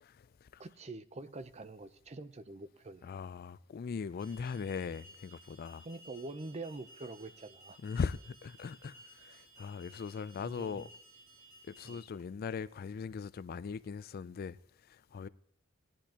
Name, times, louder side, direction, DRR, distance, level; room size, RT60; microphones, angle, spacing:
voice 1, 0.0-0.6 3.0-5.8 7.8-10.9 11.6-14.6 14.9-15.3, left 5 dB, 45° left, 0.3 m, -40 dB
voice 2, 0.6-3.2 5.8-7.8 10.4-10.9 11.8-12.0, right 2 dB, 30° right, 0.6 m, -45 dB
Alarm, 4.2-12.0, right 1 dB, 50° right, 4.8 m, -57 dB
18.0 x 10.5 x 2.9 m
head